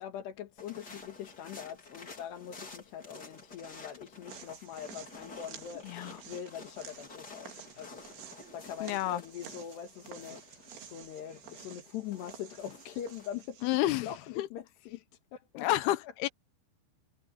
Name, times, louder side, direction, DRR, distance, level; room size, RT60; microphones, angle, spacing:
voice 1, 0.0-8.0 8.5-13.7 14.0-15.0 15.3-15.7, left 9 dB, 65° left, 3.9 m, -43 dB
sound 1, 0.6-13.3, left 3 dB, 25° left, 3.7 m, -51 dB
sound 2, 4.3-14.0, right 9 dB, 65° right, 4.4 m, -52 dB
voice 2, 5.8-6.2 8.8-9.2 13.6-14.1 14.4-14.5 15.6-16.3, left 15 dB, 85° left, 2.2 m, -30 dB
omnidirectional pair, 5.4 m